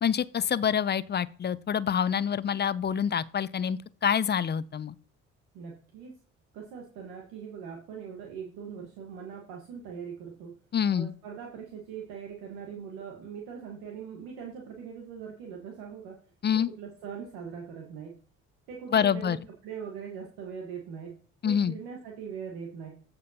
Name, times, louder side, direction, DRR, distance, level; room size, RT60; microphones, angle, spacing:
voice 1, 0.0-4.9 10.7-11.1 16.4-16.7 18.9-19.4 21.4-21.7, left 8 dB, 30° left, 0.5 m, -26 dB
voice 2, 5.5-6.1 6.5-10.5 10.9-16.2 16.8-18.1 18.7-21.1 21.4-22.9, right 7 dB, 75° right, 1.4 m, -41 dB
15.0 x 5.2 x 2.8 m
hypercardioid pair, 45°, 36 cm